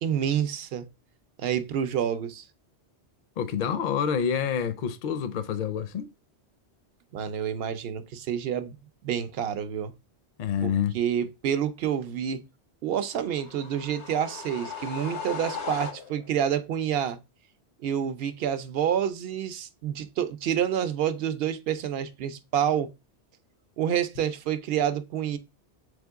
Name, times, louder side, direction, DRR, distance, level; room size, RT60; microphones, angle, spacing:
voice 1, 0.0-0.9 1.4-2.4 7.1-8.7 9.0-9.9 10.6-12.4 12.8-17.2 17.8-22.9 23.8-25.4, right 9 dB, 65° right, 0.7 m, -28 dB
voice 2, 3.4-6.1 10.4-11.0, left 8 dB, 60° left, 0.5 m, -27 dB
sound 1, 13.2-16.4, left 5 dB, 90° left, 1.1 m, -37 dB
3.6 x 3.5 x 3.4 m
omnidirectional pair, 1.1 m